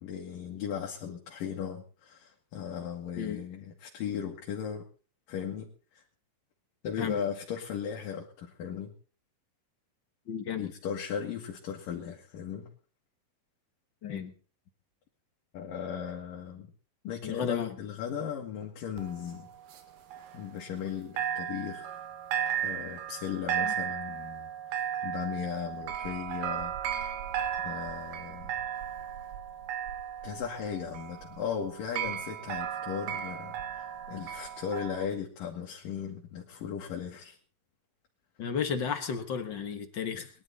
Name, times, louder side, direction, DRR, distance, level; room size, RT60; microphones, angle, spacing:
voice 1, 0.0-4.8 5.3-6.0 6.8-8.9 10.6-12.7 15.5-16.7 17.0-19.5 20.3-22.0 22.6-27.0 27.6-28.5 30.2-37.4, left 8 dB, 75° left, -1 dB, 3.5 m, -37 dB
voice 2, 10.3-10.7 14.0-14.3 17.2-17.7 23.6-23.7 38.4-40.3, left 7 dB, 55° left, 7 dB, 1.2 m, -33 dB
sound 1, 19.0-20.9 21.2-35.1, right 9 dB, 75° right, 3.1 m, -35 dB
21.0 x 11.5 x 4.1 m, 0.39 s
omnidirectional pair, 4.0 m